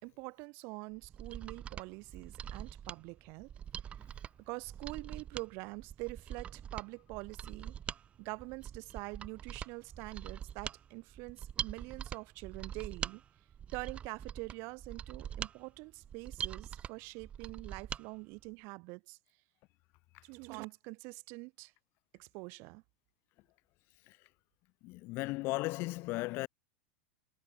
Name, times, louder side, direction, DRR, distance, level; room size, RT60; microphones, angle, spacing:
voice 1, 0.0-3.5 4.5-7.7 8.2-13.2 13.7-19.2 20.2-21.7 22.1-22.8, right 28 dB, 40° right, 4.5 m, -45 dB
Mechanisms, 1.0-18.0 18.4-18.5, right 9 dB, 20° right, 1.8 m, -44 dB
voice 2, 24.8-26.5, left 22 dB, 40° left, 3.8 m, -36 dB
supercardioid pair, 155°, 6 cm